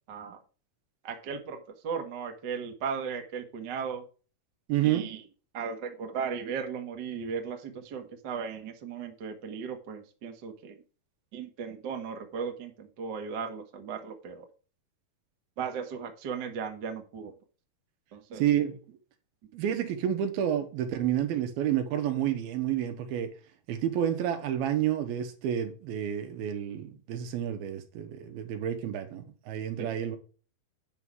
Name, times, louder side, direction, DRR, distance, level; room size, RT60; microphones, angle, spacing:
voice 1, 0.1-0.4 1.0-4.0 4.8-5.2 5.5-10.8 11.3-14.4 15.6-17.3 18.1-18.4 29.8-29.9, right 6 dB, 50° right, 1.3 m, -36 dB
voice 2, 4.7-5.1 18.4-18.7 19.5-23.3 23.7-30.2, right 10 dB, 80° right, 3.1 m, -29 dB
9.7 x 5.5 x 4.8 m
omnidirectional pair, 4.3 m